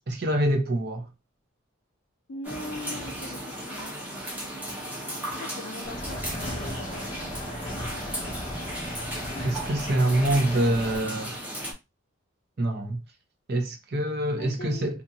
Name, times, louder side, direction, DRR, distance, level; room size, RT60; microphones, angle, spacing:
voice 1, 0.1-1.1 9.4-11.4 12.6-13.0 13.5-15.0, right 1 dB, 55° right, 0.6 m, -25 dB
voice 2, 2.3-3.9 5.3-7.2 8.0-8.2 14.4-15.0, left 2 dB, 65° left, 0.6 m, -41 dB
sound 1, 2.4-11.7, right 1 dB, 10° right, 0.7 m, -36 dB
sound 2, 5.8-11.0, left 1 dB, 25° left, 0.6 m, -36 dB
2.8 x 2.4 x 2.7 m
head